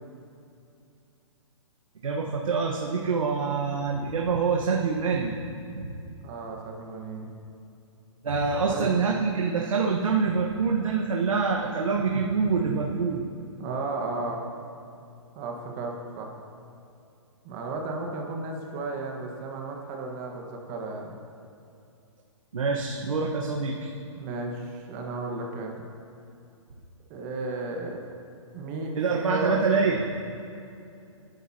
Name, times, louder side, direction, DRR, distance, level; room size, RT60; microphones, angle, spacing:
voice 1, 2.0-5.3 5.7-5.9 8.2-13.2 22.5-23.9 28.9-30.0, right 5 dB, 90° right, -1 dB, 1.3 m, -25 dB
voice 2, 6.2-7.3 8.6-8.9 13.6-14.5 15.3-16.3 17.4-21.1 24.2-25.7 27.1-28.0 28.5-29.6, right 3 dB, 30° right, 1 dB, 1.4 m, -34 dB
19.0 x 10.5 x 2.9 m, 2.6 s
hypercardioid pair, 150°, 17 cm